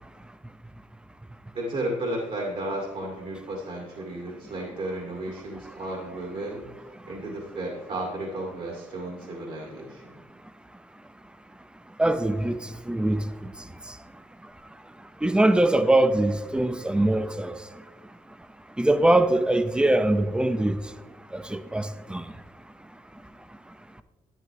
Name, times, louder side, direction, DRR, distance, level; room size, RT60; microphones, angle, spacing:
voice 1, 1.5-10.1, right 1 dB, 50° right, 2.2 m, -33 dB
voice 2, 12.0-12.6 12.9-13.2 15.2-17.5 18.8-20.8 21.3-22.2, right 1 dB, 5° right, 0.6 m, -22 dB
12.0 x 9.5 x 3.0 m
cardioid pair, 105°, 13 cm